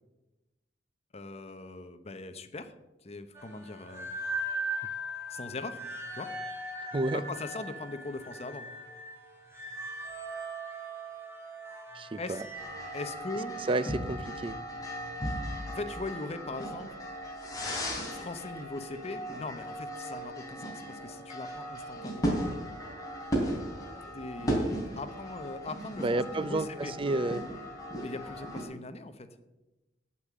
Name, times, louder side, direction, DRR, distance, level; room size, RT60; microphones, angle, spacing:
voice 1, 1.1-2.7 3.0-4.2 5.3-5.8 6.1-6.3 7.1-8.7 12.2-12.4 12.9-13.5 15.7-16.9 18.1-22.4 24.1-26.9 28.0-29.3, left 2 dB, 40° left, 9 dB, 0.9 m, -40 dB
sound 1, 3.3-13.1, right 1 dB, 15° right, 2.7 m, -39 dB
voice 2, 11.9-12.4 13.7-14.6 26.0-27.4, right 2 dB, 30° right, 16 dB, 0.4 m, -30 dB
sound 2, 12.6-28.6, equal, 20° left, 3.2 m, -36 dB
8.6 x 8.5 x 7.3 m, 1.0 s
head